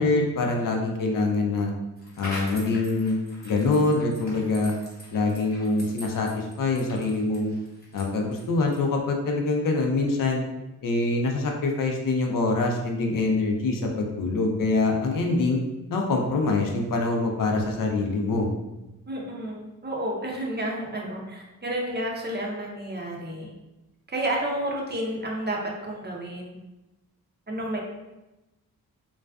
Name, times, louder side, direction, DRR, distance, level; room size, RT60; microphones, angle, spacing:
voice 1, 0.0-1.7 2.2-3.2 3.4-4.7 5.1-7.5 7.9-10.4 10.8-15.6 15.9-18.5, left 3 dB, 60° left, 1 dB, 0.5 m, -24 dB
sound 1, 2.0-8.9, left 1 dB, 25° left, 1.0 m, -43 dB
voice 2, 19.1-23.5 24.1-26.6 27.5-27.8, right 1 dB, 30° right, -2 dB, 0.5 m, -31 dB
2.4 x 2.2 x 2.3 m, 1.0 s
cardioid pair, 60°, 37 cm